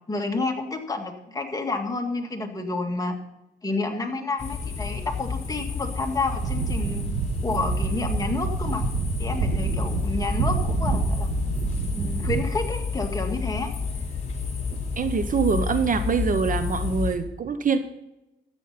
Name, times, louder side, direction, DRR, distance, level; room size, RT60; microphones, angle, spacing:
voice 1, 0.1-3.2 3.6-7.0 7.4-8.9 9.2-11.3 11.9-13.7, left 3 dB, 20° left, 2 dB, 2.0 m, -29 dB
sound 1, 4.4-17.2, left 5 dB, 35° left, 3.0 m, -30 dB
sound 2, 6.3-12.4, right 5 dB, 80° right, 1.5 m, -28 dB
voice 2, 15.0-17.8, right 5 dB, 40° right, 10 dB, 0.9 m, -24 dB
13.5 x 9.0 x 4.2 m, 0.91 s
cardioid pair, 90°, 20 cm